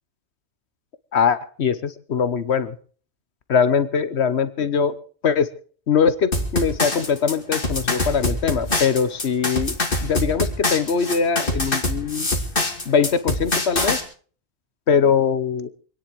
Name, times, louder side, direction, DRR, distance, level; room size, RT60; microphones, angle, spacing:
voice 1, 1.1-2.7 3.5-4.9 5.2-5.5 5.9-9.8 10.0-12.3 12.9-14.0 14.9-15.7, left 6 dB, 75° left, 13 dB, 1.2 m, -21 dB
sound 1, 6.3-14.0, left 2 dB, 50° left, 2.6 m, -24 dB
26.0 x 10.0 x 4.7 m, 0.43 s
omnidirectional pair, 1.1 m